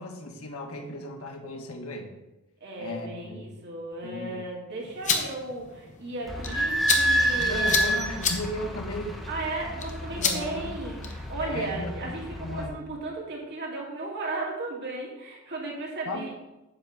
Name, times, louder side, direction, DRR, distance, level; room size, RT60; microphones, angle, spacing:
voice 1, 0.0-2.1 2.8-3.5 4.0-4.4 7.4-9.2 10.2-10.7 11.4-11.9 12.4-12.8 16.0-16.3, left 1 dB, 75° left, 2 dB, 1.3 m, -35 dB
voice 2, 2.6-7.9 9.3-16.3, right 2 dB, 50° right, -3 dB, 2.5 m, -35 dB
sound 1, 4.8-11.3, left 5 dB, 35° left, 1.0 m, -32 dB
Idling / Squeak, 6.2-12.7, right 1 dB, ahead, 1.5 m, -29 dB
9.7 x 3.7 x 7.0 m, 1.0 s
head